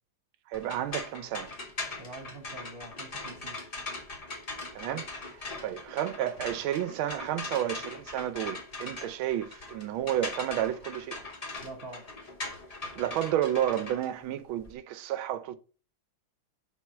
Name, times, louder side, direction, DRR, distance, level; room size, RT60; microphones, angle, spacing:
sound 1, 0.5-14.7, left 3 dB, 50° left, 0.4 m, -40 dB
voice 1, 0.5-1.5 4.7-11.2 12.9-15.6, right 11 dB, 75° right, 1.4 m, -31 dB
voice 2, 2.0-3.6 11.6-12.1, right 2 dB, 30° right, 1.2 m, -45 dB
4.6 x 4.3 x 5.8 m
omnidirectional pair, 2.3 m